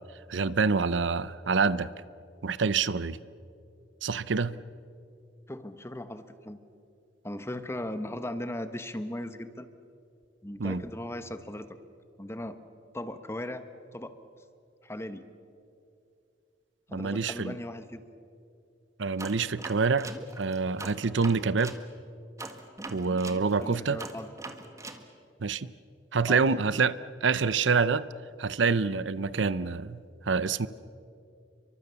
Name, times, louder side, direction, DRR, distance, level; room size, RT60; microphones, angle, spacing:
voice 1, 0.3-1.9 2.4-3.2 4.0-4.6 10.6-10.8 16.9-17.5 19.0-21.7 22.9-24.0 25.4-25.7 26.1-28.0 28.4-30.7, right 4 dB, 85° right, 17 dB, 0.7 m, -27 dB
voice 2, 5.5-6.6 7.2-9.7 10.4-11.7 12.2-12.6 12.9-13.7 13.9-14.1 14.8-15.2 16.9-18.0 23.6-24.3 26.3-26.4, left 1 dB, 15° left, 10 dB, 1.1 m, -37 dB
sound 1, 19.2-21.8 22.4-25.0, right 2 dB, 15° right, 1.6 m, -42 dB
30.0 x 24.0 x 7.0 m, 2.6 s
head